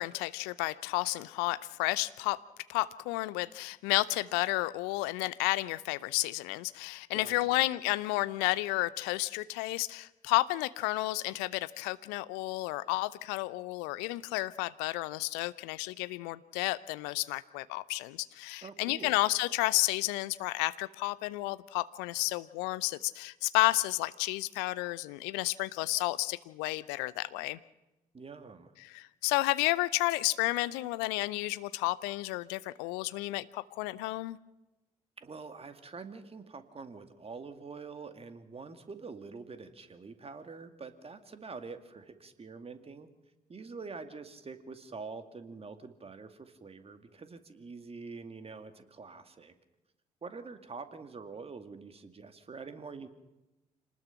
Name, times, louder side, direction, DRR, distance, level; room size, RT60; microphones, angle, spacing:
voice 1, 0.0-2.4 2.7-27.6 28.8-34.4, left 20 dB, 70° left, 17 dB, 0.7 m, -31 dB
voice 2, 7.1-7.6 18.6-19.2 28.1-28.7 35.2-43.1 43.5-49.5 50.2-53.1, right 4 dB, 35° right, 9 dB, 2.3 m, -46 dB
27.0 x 19.5 x 5.8 m, 1.0 s
figure-of-eight pair, 40°, 18 cm